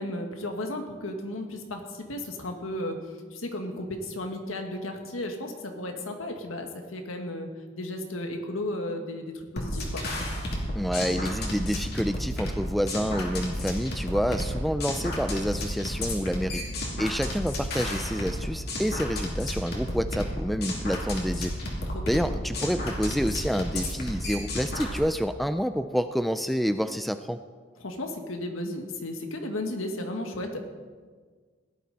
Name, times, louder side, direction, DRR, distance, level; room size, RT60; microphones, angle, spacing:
voice 1, 0.0-3.0 3.3-7.5 7.8-10.0 21.9-22.3 27.8-30.6, left 1 dB, 90° left, 4 dB, 1.8 m, -34 dB
sound 1, 9.6-25.0, left 1 dB, 50° left, 3.0 m, -32 dB
voice 2, 10.8-16.6 17.0-21.5 22.1-27.4, equal, ahead, 9 dB, 0.3 m, -28 dB
17.5 x 12.0 x 4.2 m, 1.5 s
head